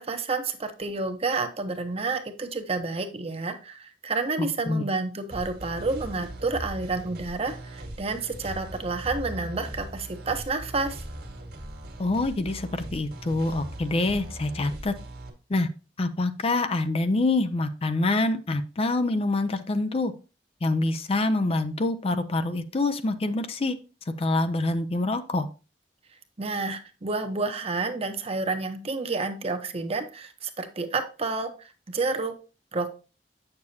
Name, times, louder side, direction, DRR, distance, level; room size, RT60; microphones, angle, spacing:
voice 1, 0.0-11.0 26.4-32.3 32.7-32.9, right 3 dB, 35° right, 7 dB, 0.9 m, -30 dB
voice 2, 4.4-4.8 12.0-14.9 15.5-15.7 16.0-20.1 20.6-23.7 24.1-25.5, left 2 dB, 35° left, 9 dB, 0.5 m, -26 dB
sound 1, 5.3-15.3, right 1 dB, 65° right, 1.6 m, -39 dB
8.3 x 6.7 x 2.8 m, 0.32 s
head